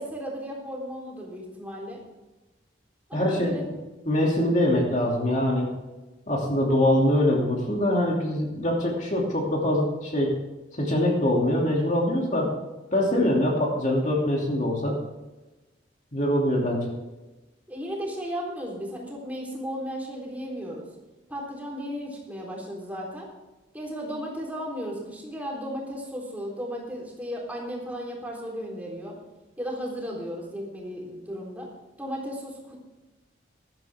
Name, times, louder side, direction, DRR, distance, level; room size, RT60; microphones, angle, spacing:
voice 1, 0.0-2.0 3.1-3.6 17.7-20.9 21.3-23.3 23.7-29.1 29.6-31.7 32.0-32.8, equal, 10° right, -3 dB, 3.7 m, -35 dB
voice 2, 3.1-3.7 4.1-5.7 6.3-10.4 10.7-12.5 12.9-15.0 16.1-16.9, left 1 dB, 40° left, -1 dB, 2.7 m, -23 dB
16.0 x 12.5 x 3.6 m, 1.1 s
head